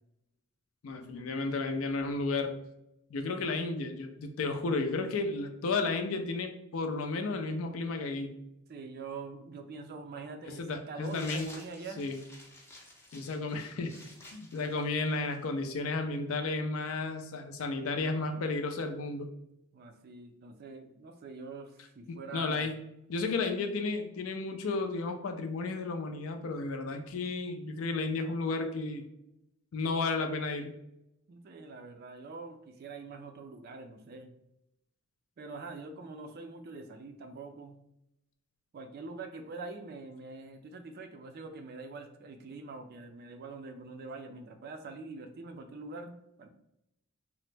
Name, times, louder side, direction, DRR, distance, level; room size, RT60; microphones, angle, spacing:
voice 1, 0.8-2.6 3.1-8.3 10.4-11.5 12.0-12.2 13.1-14.0 14.3-19.3 22.1-22.8 23.1-29.0 29.7-30.8, left 3 dB, 65° left, 5 dB, 0.4 m, -33 dB
voice 2, 8.7-12.0 19.7-22.7 31.3-34.3 35.4-37.8 38.7-46.1 46.4-46.5, right 3 dB, 45° right, 6 dB, 0.3 m, -44 dB
sound 1, 11.0-15.5, left 1 dB, 10° left, 0.5 m, -52 dB
2.9 x 2.0 x 3.2 m, 0.82 s
head